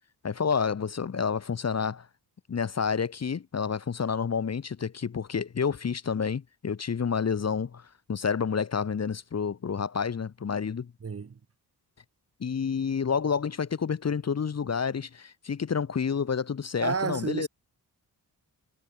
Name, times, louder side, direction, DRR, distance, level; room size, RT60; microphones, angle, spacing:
voice 1, 0.2-2.1 2.5-10.9 12.4-17.5, left 6 dB, 40° left, 1.0 m, -29 dB
voice 2, 11.0-11.4 16.8-17.5, right 5 dB, 35° right, 1.3 m, -31 dB
wide cardioid pair, 145°, 40 cm